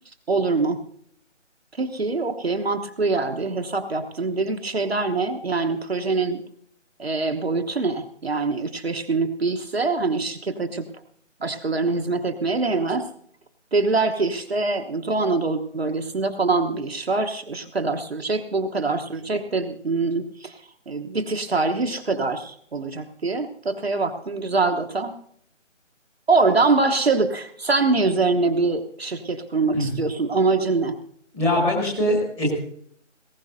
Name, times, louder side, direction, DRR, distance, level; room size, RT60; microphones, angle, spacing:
voice 1, 0.3-0.8 1.8-6.4 7.0-10.8 11.4-13.1 13.7-20.5 20.9-25.1 26.3-30.9, right 3 dB, 55° right, 5 dB, 1.1 m, -24 dB
voice 2, 31.3-32.5, left 1 dB, 5° left, -3 dB, 1.9 m, -22 dB
19.5 x 17.5 x 2.7 m, 0.66 s
figure-of-eight pair, 155°, 37 cm